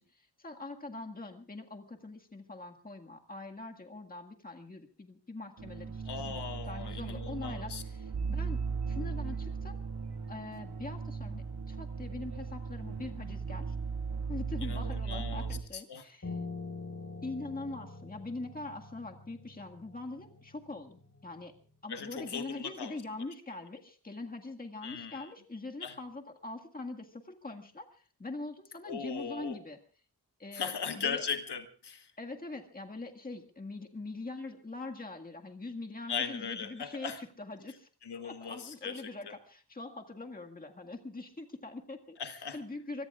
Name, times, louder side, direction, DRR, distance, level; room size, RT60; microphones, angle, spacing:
voice 1, 0.0-6.4 6.7-9.8 10.3-13.8 14.3-16.4 17.2-21.5 21.8-29.8 30.4-31.2 32.2-37.9 38.2-42.2 42.5-43.1, left 2 dB, 20° left, 3 dB, 1.8 m, -43 dB
sound 1, 5.6-15.6, right 5 dB, 70° right, 2.0 m, -37 dB
voice 2, 6.1-7.8 14.6-16.1 21.9-23.0 24.8-25.3 25.8-25.9 28.8-29.6 30.5-32.1 36.1-37.2 38.0-39.3 42.2-42.6, left 6 dB, 70° left, 7 dB, 1.4 m, -38 dB
Piano, 16.2-21.5, left 3 dB, 35° left, 5.2 m, -45 dB
24.5 x 23.5 x 2.4 m, 0.39 s
wide cardioid pair, 135°, 41 cm